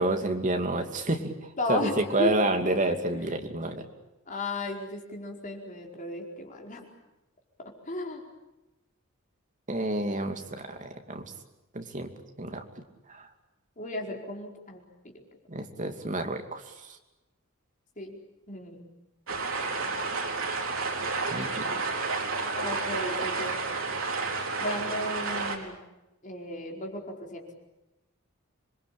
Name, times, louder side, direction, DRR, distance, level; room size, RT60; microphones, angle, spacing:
voice 1, 0.0-3.9 9.7-11.3 11.7-12.1 12.4-12.6 13.1-13.3 15.5-17.0 21.3-21.8, right 2 dB, 35° right, 5 dB, 2.7 m, -29 dB
voice 2, 1.6-2.3 2.9-3.0 4.3-6.9 7.6-8.2 13.8-14.8 18.0-18.2 18.5-18.8 22.5-23.5 24.6-25.8 26.2-27.4, left 1 dB, 40° left, 1 dB, 4.8 m, -35 dB
sound 1, 19.3-25.6, right 3 dB, 70° right, 4.1 m, -31 dB
27.0 x 22.5 x 8.6 m, 0.99 s
head